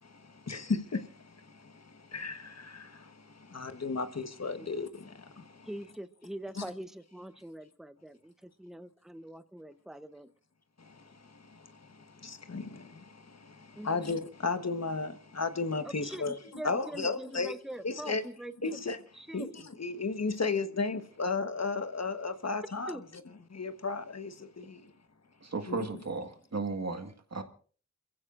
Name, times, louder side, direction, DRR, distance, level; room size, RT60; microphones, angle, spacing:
voice 1, 0.0-5.7 6.6-6.7 10.8-16.4 16.6-17.5 17.8-18.2 18.6-19.0 19.3-23.0 23.5-24.9 25.7-25.9, left 4 dB, 60° left, 1.3 m, -35 dB
voice 2, 5.7-10.3 13.8-14.0 15.8-18.8 19.1-19.5 22.9-23.0, right 1 dB, ahead, 0.8 m, -43 dB
voice 3, 25.4-27.4, right 4 dB, 65° right, 1.8 m, -35 dB
28.0 x 15.5 x 2.6 m
wide cardioid pair, 65°, 29 cm